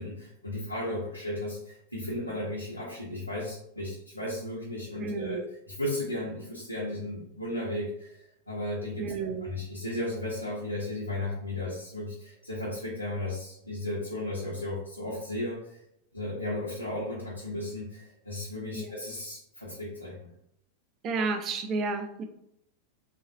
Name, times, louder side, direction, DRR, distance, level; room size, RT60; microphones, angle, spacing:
voice 1, 0.0-5.4 5.7-15.8 16.1-20.3, left 1 dB, 85° left, -7 dB, 0.8 m, -35 dB
voice 2, 5.0-5.5 9.0-9.5 18.7-18.9 21.0-22.2, right 4 dB, 30° right, 6 dB, 0.4 m, -31 dB
3.7 x 2.6 x 2.5 m, 0.76 s
figure-of-eight pair, 90°, 0 cm